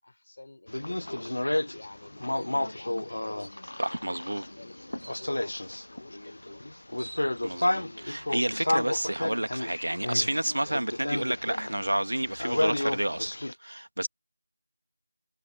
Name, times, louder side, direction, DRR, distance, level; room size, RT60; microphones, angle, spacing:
voice 1, 0.0-3.8 4.2-4.7 5.2-6.7, left 2 dB, 35° left, 3.9 m, -50 dB
sound 1, 0.7-13.5, left 1 dB, 60° left, 0.4 m, -32 dB
sound 2, 2.4-2.5 3.0-3.1 3.4-4.0 5.0-5.4 6.5-6.6 6.8-7.7, right 1 dB, 55° right, 1.3 m, -48 dB
voice 2, 3.8-4.4 7.4-13.3 13.6-14.1, right 1 dB, 90° right, 1.7 m, -30 dB
figure-of-eight pair, 180°, 0 cm